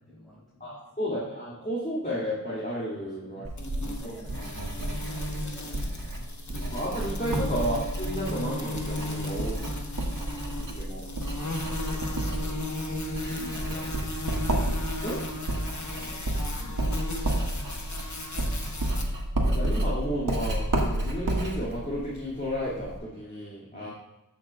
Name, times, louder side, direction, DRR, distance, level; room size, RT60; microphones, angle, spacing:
voice 1, 0.0-0.8 2.9-6.3 9.0-10.0 12.8-14.4 15.9-18.4 23.7-23.9, left 1 dB, ahead, -9 dB, 3.3 m, -49 dB
voice 2, 0.6-3.4 4.0-4.1 6.7-9.5 10.6-11.0 11.9-12.6 13.7-13.8 15.0-15.2 19.4-23.9, equal, 25° left, -8 dB, 2.4 m, -33 dB
Writing, 3.4-23.0, right 1 dB, 65° right, 1.6 m, -31 dB
sound 1, 3.6-19.0, left 2 dB, 55° left, 1.0 m, -36 dB
13.5 x 6.2 x 2.3 m, 0.93 s
wide cardioid pair, 40°, 35 cm